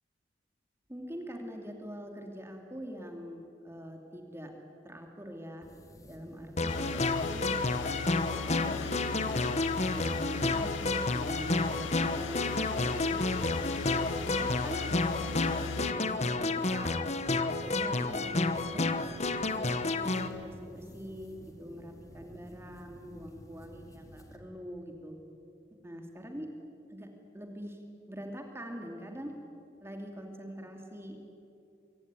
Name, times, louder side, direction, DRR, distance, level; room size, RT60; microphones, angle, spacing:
voice 1, 0.9-4.5 4.8-5.7 6.1-10.7 11.1-15.3 15.8-16.9 17.6-18.9 19.3-25.1 25.8-26.5 26.9-27.1 27.3-27.8 28.1-29.3 29.8-31.2, equal, 15° right, 3 dB, 2.7 m, -44 dB
sound 1, 5.6-24.4, equal, 20° left, 2.5 m, -53 dB
sound 2, 6.6-20.3, left 3 dB, 35° left, 1.3 m, -30 dB
sound 3, 6.7-15.9, left 5 dB, 80° left, 0.6 m, -39 dB
24.5 x 24.5 x 9.7 m, 2.7 s
head